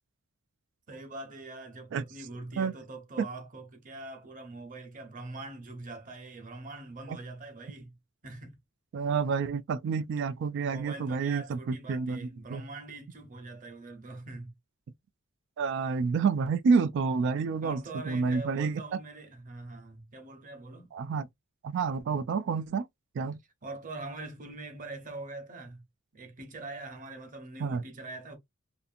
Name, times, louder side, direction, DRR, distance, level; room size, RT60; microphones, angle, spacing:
voice 1, 0.9-7.9 8.2-8.6 10.6-14.5 17.6-20.9 23.6-25.8 26.1-28.4, right 2 dB, 40° right, 0.8 m, -43 dB
voice 2, 8.9-12.6 15.6-18.8 20.9-21.3 21.6-22.8 23.2-23.4 27.6-27.8, right 5 dB, 60° right, 0.3 m, -29 dB
2.6 x 2.5 x 2.4 m
head